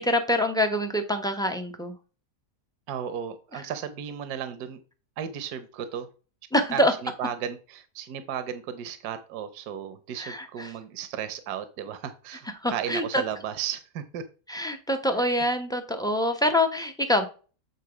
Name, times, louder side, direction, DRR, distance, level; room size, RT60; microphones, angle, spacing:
voice 1, 0.0-1.9 3.5-3.6 6.5-6.9 10.2-10.7 12.6-13.2 14.5-17.3, left 1 dB, 5° left, 6 dB, 0.4 m, -25 dB
voice 2, 2.9-4.8 5.2-6.1 6.7-14.2, right 8 dB, 70° right, 10 dB, 1.3 m, -34 dB
8.5 x 3.7 x 4.9 m, 0.35 s
omnidirectional pair, 1.8 m